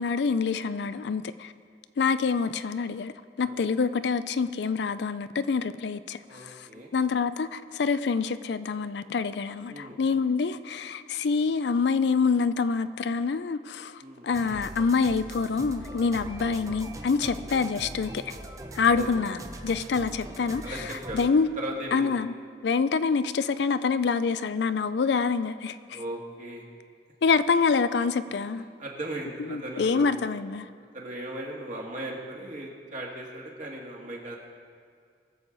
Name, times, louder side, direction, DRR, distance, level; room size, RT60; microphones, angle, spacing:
voice 1, 0.0-1.5 2.0-3.1 3.4-18.2 18.7-19.4 19.6-20.7 21.1-21.5 21.9-22.3 22.6-26.0 27.2-28.6 29.5-30.7, left 5 dB, 70° left, 0.4 m, -26 dB
voice 2, 6.3-6.9 9.7-10.0 14.0-14.3 16.2-16.6 17.3-17.5 18.9-19.1 20.6-21.2 21.6-22.2 25.9-26.6 28.8-30.1 30.9-34.4, right 1 dB, 45° right, 2.0 m, -37 dB
sound 1, 14.3-21.3, right 1 dB, 20° right, 0.7 m, -41 dB
21.5 x 7.4 x 4.0 m
head